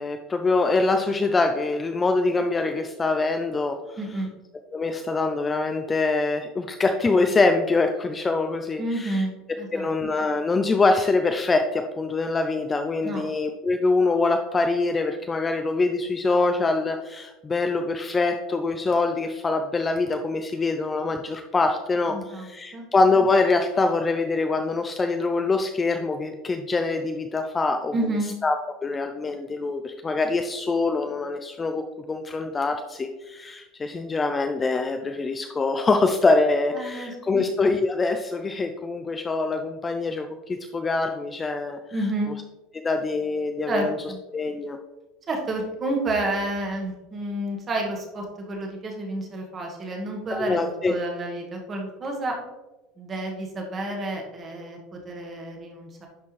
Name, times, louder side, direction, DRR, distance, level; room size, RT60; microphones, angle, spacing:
voice 1, 0.0-4.0 4.7-9.2 9.7-27.9 28.4-28.6 28.8-41.8 42.8-44.0 44.3-44.8 50.3-50.9, left 3 dB, 15° left, 5 dB, 0.3 m, -24 dB
voice 2, 4.0-4.3 8.8-9.9 13.0-13.3 22.1-22.9 27.9-28.4 36.7-37.5 41.9-42.3 43.6-44.2 45.3-52.4 53.0-56.1, right 2 dB, 20° right, 1 dB, 1.3 m, -30 dB
11.0 x 4.3 x 3.2 m, 1.1 s
cardioid pair, 170°, 0 cm